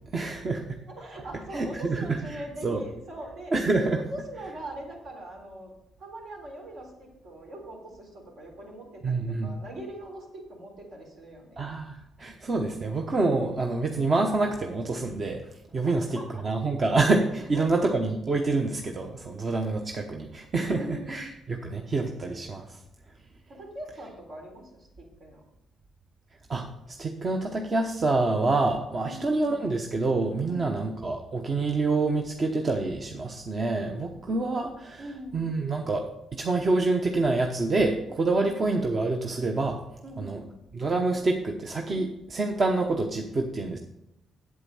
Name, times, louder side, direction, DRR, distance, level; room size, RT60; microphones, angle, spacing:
voice 1, 0.1-0.8 1.5-2.8 3.5-4.0 9.0-9.6 11.6-15.4 15.7-22.8 26.5-35.1 35.3-36.0 36.3-39.8 40.2-40.4 40.7-43.8, right 3 dB, 40° right, 2 dB, 1.0 m, -27 dB
voice 2, 0.9-3.5 4.1-11.6 15.8-16.4 17.4-17.8 20.7-21.2 23.5-25.4 29.0-29.5 30.5-30.9 35.0-35.5 40.0-40.5, right 1 dB, 70° right, 0 dB, 3.6 m, -42 dB
8.3 x 8.1 x 5.6 m, 0.86 s
cardioid pair, 90°, 0 cm